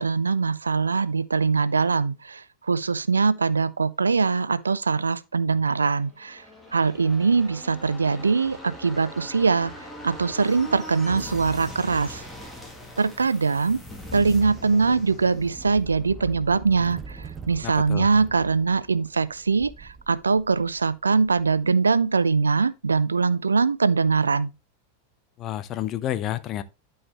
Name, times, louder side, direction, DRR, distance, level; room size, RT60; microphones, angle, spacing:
voice 1, 0.0-6.4 6.7-12.3 13.0-13.8 14.1-24.5, right 4 dB, 75° right, 0.4 m, -22 dB
sound 1, 6.1-19.6 19.9-20.0, left 1 dB, 5° left, 2.3 m, -42 dB
sound 2, 11.8-22.0, right 5 dB, 25° right, 0.7 m, -45 dB
voice 2, 17.6-18.1 25.4-26.6, left 12 dB, 35° left, 0.7 m, -30 dB
12.0 x 4.8 x 3.0 m
figure-of-eight pair, 90°, 0 cm